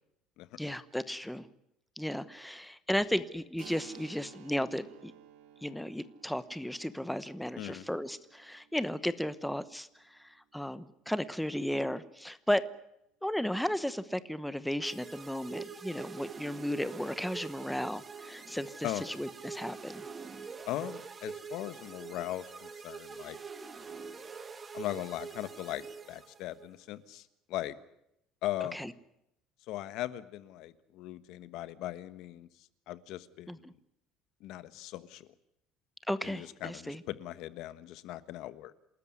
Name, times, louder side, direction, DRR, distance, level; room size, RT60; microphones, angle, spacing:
voice 1, 0.6-1.5 2.0-5.1 5.6-12.7 13.2-20.0 28.7-28.9 33.5-33.7 36.1-37.0, equal, ahead, 14 dB, 1.0 m, -34 dB
Keyboard (musical), 3.6-11.0, right 10 dB, 85° right, 3.9 m, -57 dB
sound 1, 14.8-26.7, right 5 dB, 20° right, 1.5 m, -45 dB
voice 2, 20.7-23.4 24.7-27.7 28.4-28.9 29.7-32.5 32.9-33.7 34.4-35.3 36.2-38.7, left 14 dB, 55° left, 14 dB, 1.4 m, -39 dB
28.0 x 13.5 x 9.7 m, 0.79 s
cardioid pair, 170°, 0 cm